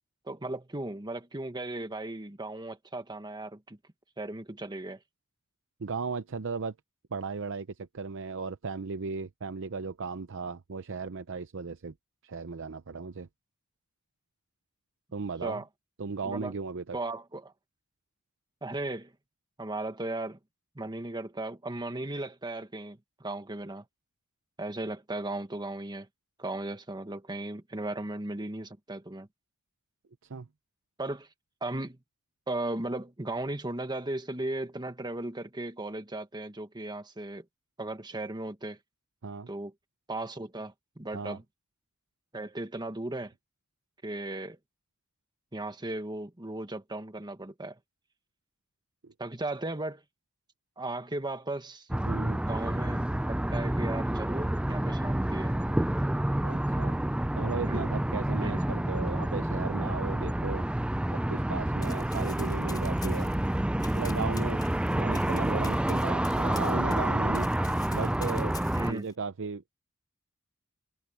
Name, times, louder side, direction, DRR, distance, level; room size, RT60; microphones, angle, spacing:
voice 1, 0.2-3.8 4.2-5.0 15.4-15.7 16.2-16.5 16.9-17.5 18.6-19.1 19.6-20.4 20.7-23.8 24.6-26.1 26.4-29.3 31.0-31.3 31.6-32.0 32.5-37.4 37.8-38.8 39.5-39.7 40.1-41.4 42.3-43.3 44.0-44.6 45.5-47.8 49.2-50.0 50.8-51.9 52.4-55.5 57.6-57.9 58.4-58.8 68.7-69.1, right 2 dB, 20° right, 1.4 m, -36 dB
voice 2, 5.8-6.7 7.1-11.9 12.2-13.3 15.1-15.6 16.0-17.0 30.3-30.5 39.2-39.5 41.1-41.4 49.0-49.1 52.1-52.4 56.4-57.0 57.4-60.7 61.3-63.3 63.9-64.6 64.9-67.5 67.9-68.6 68.9-69.7, right 4 dB, 60° right, 0.6 m, -36 dB
sound 1, 51.9-68.9, right 1 dB, 5° right, 0.3 m, -29 dB
Run, 61.8-67.1 67.3-69.1, left 4 dB, 20° left, 3.9 m, -47 dB
head